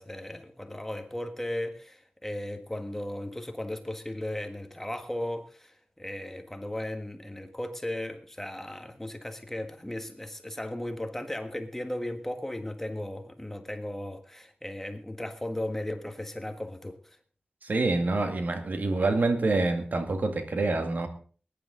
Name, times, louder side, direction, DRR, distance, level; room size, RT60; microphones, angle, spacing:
voice 1, 0.0-17.0, left 1 dB, 10° left, 6 dB, 1.6 m, -36 dB
voice 2, 17.6-21.1, right 3 dB, 60° right, 6 dB, 2.0 m, -26 dB
20.5 x 11.0 x 3.9 m, 0.41 s
wide cardioid pair, 100°, 3 cm